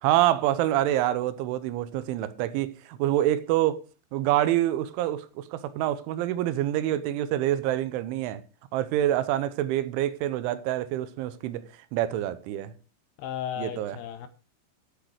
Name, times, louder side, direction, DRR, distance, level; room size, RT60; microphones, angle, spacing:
voice 1, 0.0-3.8 4.1-8.4 8.7-11.6 11.9-12.7 13.6-14.0, right 13 dB, 90° right, 3.3 m, -26 dB
voice 2, 13.2-14.3, left 10 dB, 80° left, 2.4 m, -34 dB
13.5 x 6.3 x 6.3 m
omnidirectional pair, 5.3 m